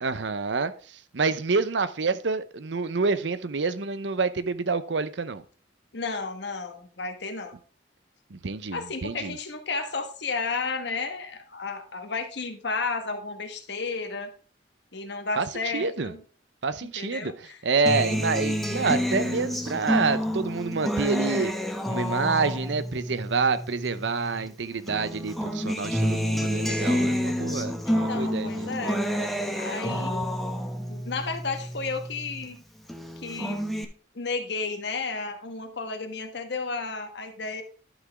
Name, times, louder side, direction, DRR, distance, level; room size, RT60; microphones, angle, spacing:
voice 1, 0.0-5.4 8.3-9.3 15.4-15.5 15.7-16.1 16.6-17.3 17.6-21.5 21.9-28.7 29.9-30.0, right 4 dB, 75° right, 14 dB, 0.7 m, -28 dB
voice 2, 5.9-7.6 8.7-14.3 14.9-16.2 17.0-17.6 27.9-29.0 29.5-30.3 30.9-32.6 33.2-33.6 34.1-37.6, left 4 dB, 65° left, 6 dB, 1.4 m, -32 dB
Acoustic guitar, 17.9-24.5 24.9-32.5 32.9-33.8, equal, ahead, 0.9 m, -29 dB
11.5 x 6.0 x 3.5 m, 0.40 s
head